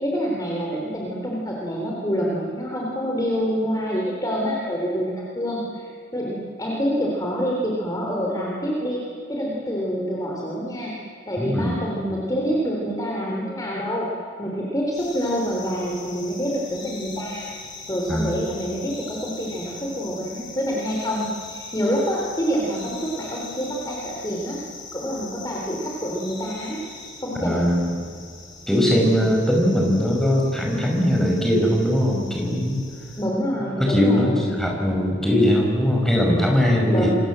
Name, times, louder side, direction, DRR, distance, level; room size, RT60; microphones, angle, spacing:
voice 1, 0.0-9.0 9.3-10.9 11.3-14.1 14.4-17.5 17.9-24.6 24.9-26.8 27.2-27.7 28.9-29.2 33.2-34.4 36.9-37.1, equal, 20° left, -3 dB, 3.7 m, -27 dB
voice 2, 11.4-11.8 18.1-18.3 27.4-27.9 28.7-32.8 33.8-37.1, equal, ahead, -1 dB, 5.7 m, -20 dB
sound 1, 14.9-33.3, left 3 dB, 40° left, 8.0 m, -41 dB
28.0 x 24.5 x 7.6 m, 2.4 s
head